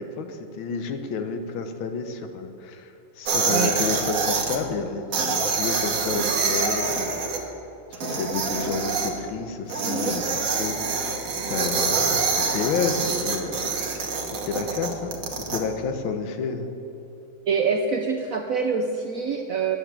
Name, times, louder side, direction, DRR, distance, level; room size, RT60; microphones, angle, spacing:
voice 1, 0.0-7.4 7.9-11.1 11.5-16.7, left 5 dB, 85° left, 8 dB, 1.7 m, -31 dB
sound 1, 3.3-4.6 5.1-7.4 7.9-9.1 9.7-15.6, right 4 dB, 50° right, 1.4 m, -25 dB
voice 2, 17.5-19.8, right 5 dB, 70° right, 3 dB, 0.8 m, -25 dB
9.7 x 7.3 x 8.2 m, 2.9 s
omnidirectional pair, 2.2 m